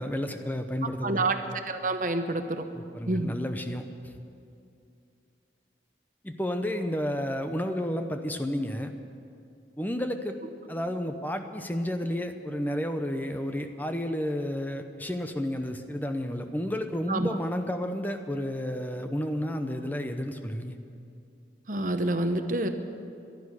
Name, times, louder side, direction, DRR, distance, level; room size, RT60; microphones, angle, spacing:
voice 1, 0.0-1.3 2.7-4.1 6.2-8.9 9.8-10.3 10.7-20.8, equal, 10° left, 6 dB, 0.8 m, -31 dB
voice 2, 1.0-1.4 1.7-2.7 3.1-3.3 17.1-17.3 21.7-22.7, right 2 dB, 45° right, 7 dB, 0.9 m, -27 dB
12.0 x 11.0 x 9.8 m, 2.5 s
head